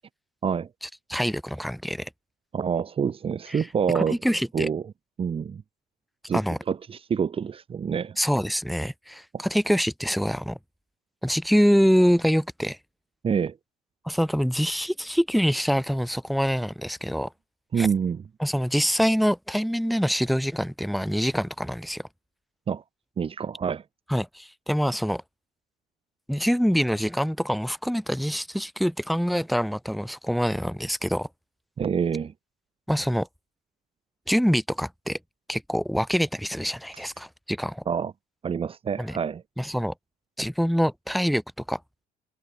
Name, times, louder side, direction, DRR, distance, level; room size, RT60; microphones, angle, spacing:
voice 1, 0.8-2.1 3.5-3.6 3.9-4.7 6.3-6.6 8.2-10.6 11.2-12.8 14.0-17.3 17.8-17.9 18.4-22.1 24.1-25.2 26.3-31.3 32.9-33.3 34.3-35.2 35.5-37.8 39.0-39.2 39.6-39.9 40.4-41.4 41.7-41.8, equal, ahead, 1.2 m, -25 dB
voice 2, 2.5-4.2 4.5-4.8 5.2-5.6 6.3-6.4 6.7-8.2 9.3-9.5 13.2-13.6 17.7-18.2 22.7-22.8 23.2-23.8 31.8-32.3 36.9-37.0 37.9-38.1 38.4-39.4, right 7 dB, 35° right, 1.1 m, -27 dB
cardioid pair, 110°, 17 cm